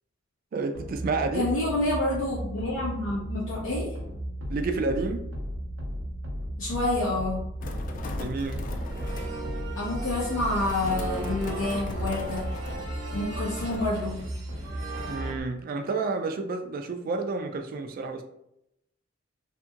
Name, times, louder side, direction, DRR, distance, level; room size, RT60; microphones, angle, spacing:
voice 1, 0.5-1.5 4.5-5.2 8.1-8.7 15.1-18.2, right 3 dB, 45° right, 6 dB, 0.3 m, -30 dB
sound 1, 0.7-15.4, equal, 85° right, 0.6 m, -35 dB
voice 2, 1.3-3.9 6.6-7.4 9.8-12.4 13.1-14.2, left 2 dB, 90° left, -8 dB, 0.8 m, -28 dB
sound 2, 7.6-13.8, left 1 dB, 45° left, 0.3 m, -38 dB
sound 3, 8.7-15.3, right 3 dB, 65° right, 1.0 m, -39 dB
2.7 x 2.6 x 2.4 m, 0.82 s
head